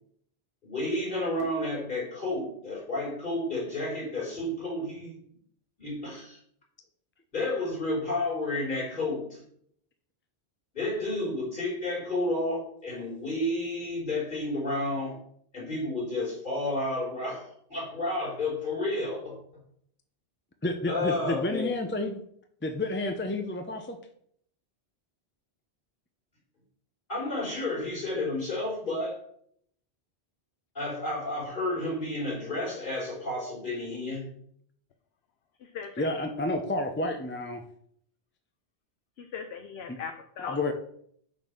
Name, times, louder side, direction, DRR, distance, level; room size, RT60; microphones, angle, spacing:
voice 1, 0.6-5.2 5.8-6.4 7.3-9.4 10.7-15.2 15.5-19.4 20.9-21.7 27.1-29.2 30.8-34.3, left 2 dB, 50° left, -4 dB, 3.8 m, -31 dB
voice 2, 20.6-22.2 22.6-24.0 36.0-37.6 39.9-40.0 40.5-40.7, left 2 dB, 15° left, 5 dB, 0.5 m, -30 dB
voice 3, 35.6-36.1 39.2-40.6, left 6 dB, 70° left, 6 dB, 0.9 m, -38 dB
6.6 x 4.2 x 6.4 m, 0.66 s
omnidirectional pair, 1.1 m